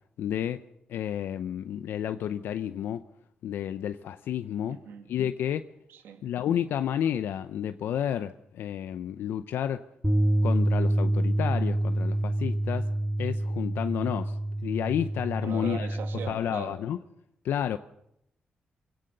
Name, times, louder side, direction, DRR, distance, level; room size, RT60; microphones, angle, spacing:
voice 1, 0.2-0.6 0.9-3.0 3.4-4.8 5.1-5.6 6.2-9.8 10.4-12.9 13.2-14.3 14.6-15.9 16.3-17.0 17.4-17.8, left 10 dB, 85° left, 0.7 m, -30 dB
voice 2, 4.7-5.1 5.9-6.2 15.4-16.8, right 7 dB, 85° right, 2.4 m, -39 dB
Bass guitar, 10.0-16.3, right 1 dB, 5° right, 3.1 m, -27 dB
23.5 x 17.5 x 6.7 m
cardioid pair, 70°, 4 cm